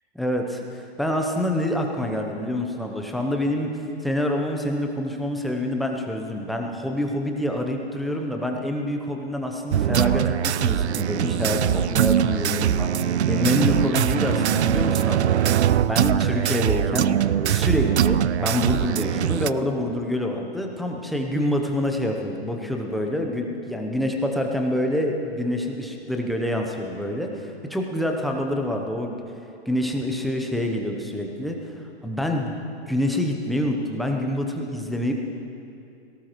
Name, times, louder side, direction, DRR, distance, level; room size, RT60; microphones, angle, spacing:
voice 1, 0.1-17.1 17.5-29.1 29.7-32.6 32.9-35.1, left 1 dB, ahead, 1 dB, 0.7 m, -27 dB
sound 1, 9.7-19.5, right 10 dB, 80° right, 0.5 m, -22 dB
18.0 x 17.5 x 3.1 m, 2.6 s
hypercardioid pair, 135°, 33 cm